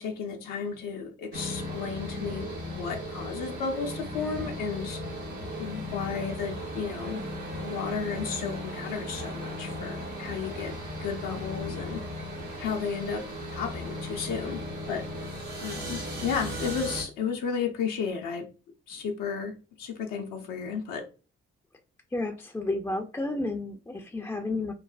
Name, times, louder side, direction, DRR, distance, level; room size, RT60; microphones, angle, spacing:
voice 1, 0.0-5.0 5.6-7.2 7.6-10.8 11.0-12.3 12.6-13.2 13.5-15.0 15.6-18.5 18.9-21.0, left 6 dB, 75° left, 0.6 m, -33 dB
sound 1, 1.3-17.0, equal, 85° right, 1.0 m, -36 dB
voice 2, 22.1-24.7, left 2 dB, 10° left, 0.3 m, -31 dB
3.1 x 2.0 x 2.4 m
hypercardioid pair, 45°, 33 cm